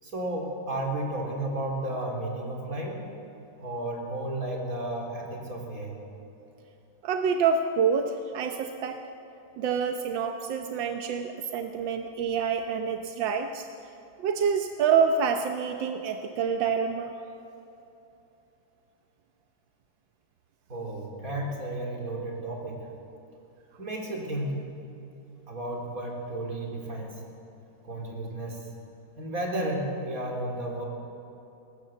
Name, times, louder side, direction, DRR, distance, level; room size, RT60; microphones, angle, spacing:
voice 1, 0.0-3.1 3.6-6.0 20.7-22.9 23.8-24.6 25.5-27.2 27.8-28.6 29.2-30.9, right 1 dB, 45° right, 0 dB, 4.0 m, -33 dB
voice 2, 7.0-9.0 9.6-13.7 14.2-17.1, right 6 dB, 85° right, 5 dB, 1.6 m, -27 dB
20.5 x 19.0 x 7.6 m, 2.9 s
omnidirectional pair, 2.0 m